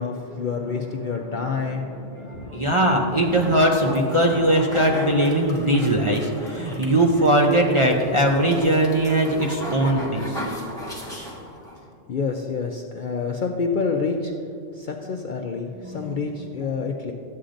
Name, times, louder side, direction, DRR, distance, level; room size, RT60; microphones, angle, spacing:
voice 1, 0.0-3.4 12.1-14.3 14.8-17.1, left 5 dB, 55° left, 2 dB, 0.5 m, -28 dB
voice 2, 2.5-10.4 15.8-16.1, right 1 dB, 35° right, -1 dB, 0.5 m, -20 dB
sound 1, 3.1-11.8, equal, 5° left, 1.5 m, -35 dB
13.0 x 8.4 x 2.5 m, 2.4 s
omnidirectional pair, 1.3 m